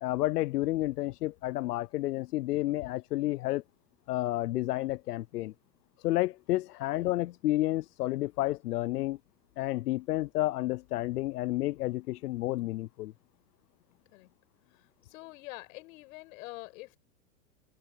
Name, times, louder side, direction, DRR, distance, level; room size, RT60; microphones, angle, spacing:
voice 1, 0.0-3.6 4.1-5.5 6.0-9.2 9.6-13.1, left 16 dB, 85° left, 0.7 m, -30 dB
voice 2, 14.7-17.0, left 22 dB, 60° left, 6.3 m, -46 dB
open air
supercardioid pair, 135°, 46 cm